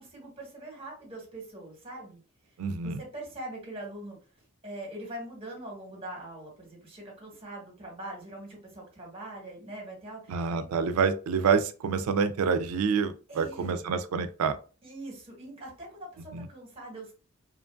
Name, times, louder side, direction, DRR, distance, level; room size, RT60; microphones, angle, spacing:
voice 1, 0.0-2.6 2.8-10.6 13.3-13.9 14.8-17.1, right 1 dB, 25° right, -1 dB, 1.1 m, -43 dB
voice 2, 2.6-3.0 10.3-14.6 16.3-16.5, right 5 dB, 85° right, 11 dB, 0.4 m, -27 dB
2.7 x 2.5 x 2.2 m, 0.36 s
head